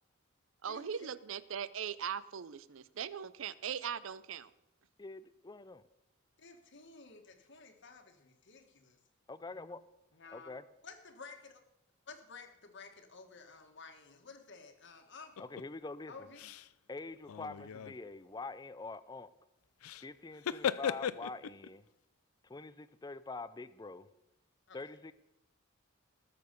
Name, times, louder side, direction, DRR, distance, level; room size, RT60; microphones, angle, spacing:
voice 1, 0.6-4.5, right 7 dB, 65° right, 18 dB, 0.5 m, -40 dB
voice 2, 5.0-5.8 9.3-9.8 10.3-10.6 15.4-16.3 16.9-19.3 20.0-21.8 22.4-24.1 24.7-25.1, left 3 dB, 20° left, 15 dB, 0.4 m, -45 dB
voice 3, 6.4-9.0 10.2-10.5 10.8-11.6 12.1-15.5 16.1-16.4 24.7-24.8, left 4 dB, 55° left, 6 dB, 1.6 m, -53 dB
sound 1, 15.4-15.6 16.3-16.7 17.2-18.0 19.8-20.1 20.3-21.7, left 8 dB, 85° left, 0.4 m, -37 dB
20.0 x 6.8 x 5.3 m, 0.88 s
head